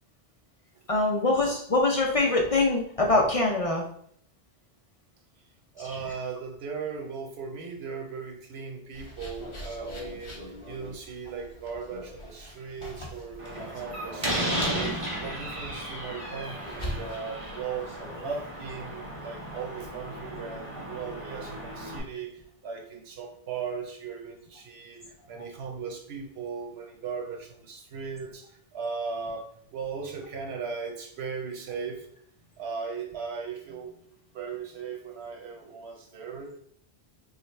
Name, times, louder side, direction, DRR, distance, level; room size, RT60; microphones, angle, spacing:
voice 1, 0.9-3.8, left 2 dB, 45° left, -1 dB, 0.5 m, -23 dB
voice 2, 5.7-32.1 32.6-34.0 34.3-36.6, right 5 dB, 90° right, 2 dB, 1.0 m, -38 dB
sound 1, 8.9-22.1, equal, 30° left, 0.9 m, -43 dB
Slam, 13.4-22.0, equal, 35° right, 0.8 m, -35 dB
4.0 x 2.4 x 3.2 m, 0.64 s
omnidirectional pair, 1.0 m